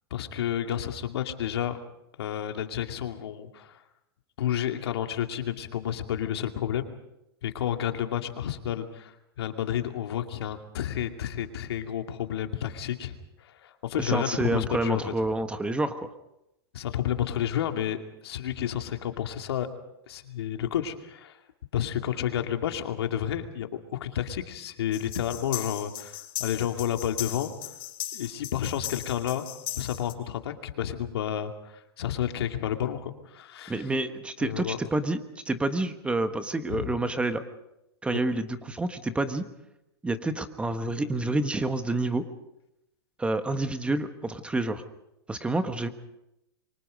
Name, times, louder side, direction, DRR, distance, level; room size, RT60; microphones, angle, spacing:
voice 1, 0.1-1.8 2.2-3.8 4.4-6.9 7.4-13.2 13.4-15.0 16.7-18.0 18.2-19.7 20.1-21.4 21.7-27.5 28.1-29.4 29.7-31.5 32.0-33.8 34.4-34.8 36.7-36.9, left 10 dB, 75° left, 5 dB, 2.5 m, -30 dB
voice 2, 14.0-16.1 33.7-35.2 35.4-37.4 38.0-39.5 40.0-42.3 43.2-44.8 45.3-45.9, right 2 dB, 10° right, 9 dB, 1.3 m, -28 dB
sound 1, 24.9-30.1, left 14 dB, 60° left, 4.0 m, -38 dB
27.5 x 24.0 x 5.3 m, 0.87 s
hypercardioid pair, 135°, 13 cm